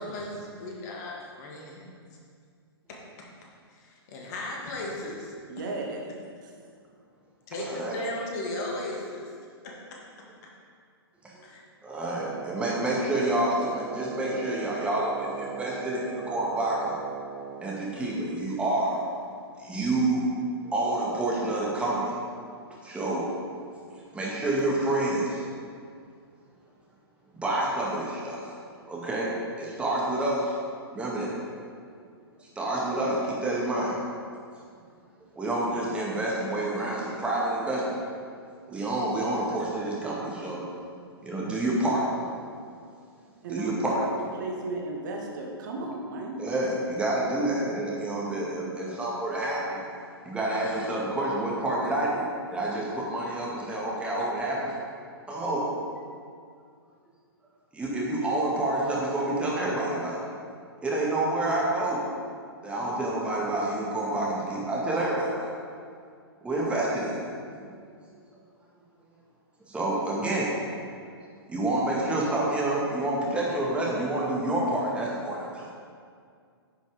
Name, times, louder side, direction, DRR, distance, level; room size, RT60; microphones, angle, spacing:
voice 1, 0.0-1.9 2.9-3.0 3.8-5.3 7.5-9.3 9.6-9.7 11.4-11.6, left 1 dB, 40° left, -2 dB, 2.0 m, -36 dB
voice 2, 5.5-6.5 43.3-44.1 44.4-46.4, right 2 dB, 45° right, 0 dB, 1.5 m, -35 dB
voice 3, 7.6-8.0 11.2-11.3 11.8-17.0 17.6-19.0 19.6-20.3 20.6-22.1 22.8-23.2 24.1-25.5 27.4-28.5 28.9-29.3 29.6-30.5 30.9-31.3 32.4-34.0 35.4-38.0 38.7-40.7 41.2-42.1 43.5-44.0 46.4-49.8 50.2-54.7 55.3-55.7 57.7-60.2 60.8-62.0 62.6-65.5 66.4-67.2 67.6-67.7 69.7-70.5 71.5-75.7, right 1 dB, 10° right, -5 dB, 2.1 m, -28 dB
Wind instrument woodwind instrument, 12.1-17.8, right 8 dB, 25° right, 0.8 m, -38 dB
10.0 x 6.6 x 5.1 m, 2.2 s
figure-of-eight pair, 115°, 14 cm